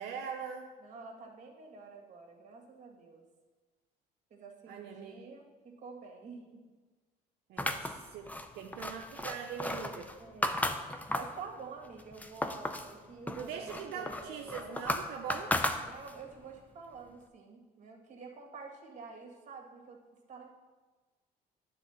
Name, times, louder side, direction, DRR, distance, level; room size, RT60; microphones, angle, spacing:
voice 1, 0.0-0.7 4.7-5.2 7.5-10.2 13.3-15.5, right 7 dB, 80° right, 2 dB, 0.7 m, -42 dB
voice 2, 0.8-3.2 4.3-6.6 10.2-10.7 11.1-14.9 15.8-20.0 20.3-20.5, right 4 dB, 45° right, 0 dB, 1.9 m, -48 dB
sound 1, 7.6-11.4 11.8-12.9 13.3-16.3, left 1 dB, 10° left, 0.5 m, -35 dB
9.8 x 3.9 x 7.1 m, 1.3 s
cardioid pair, 110°, 17 cm